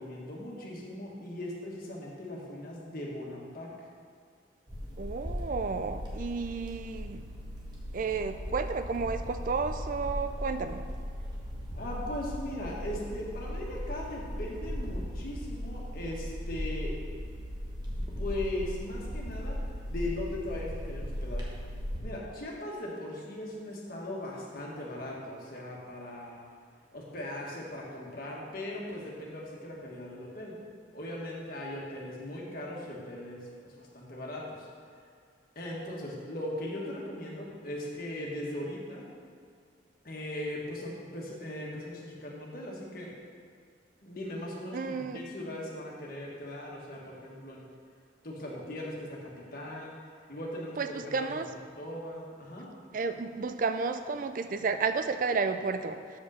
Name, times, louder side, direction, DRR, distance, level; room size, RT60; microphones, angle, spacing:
voice 1, 0.0-3.7 8.0-8.1 11.7-16.9 18.2-19.6 19.9-21.5 22.0-26.4 26.9-30.5 30.9-34.7 35.5-39.1 40.0-43.1 44.0-47.6 48.2-49.9 50.3-51.1 51.8-52.7, left 1 dB, 50° left, -3 dB, 1.6 m, -39 dB
sound 1, 4.7-22.0, equal, 25° right, 1.3 m, -37 dB
voice 2, 5.0-7.3 7.9-10.8 44.7-45.2 50.8-51.5 52.9-56.2, right 4 dB, 45° right, 9 dB, 0.4 m, -32 dB
6.8 x 5.3 x 6.4 m, 2.2 s
head